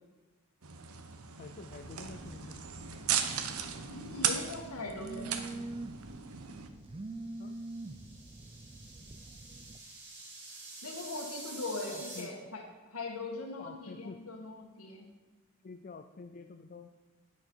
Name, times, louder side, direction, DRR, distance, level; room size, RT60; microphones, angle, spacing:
sound 1, 0.6-6.7, right 8 dB, 75° right, 0.9 m, -37 dB
voice 1, 1.4-2.6 7.1-7.5 11.9-12.5 13.6-14.2 15.6-16.9, left 4 dB, 40° left, 7 dB, 0.5 m, -48 dB
Telephone, 1.7-9.8, right 2 dB, 25° right, 0.5 m, -46 dB
voice 2, 3.9-5.6 10.8-12.6 12.9-15.1, left 2 dB, 80° left, 1 dB, 1.8 m, -40 dB
sound 2, 7.1-12.2, right 2 dB, 50° right, 3.4 m, -48 dB
11.0 x 9.0 x 4.5 m, 1.2 s
head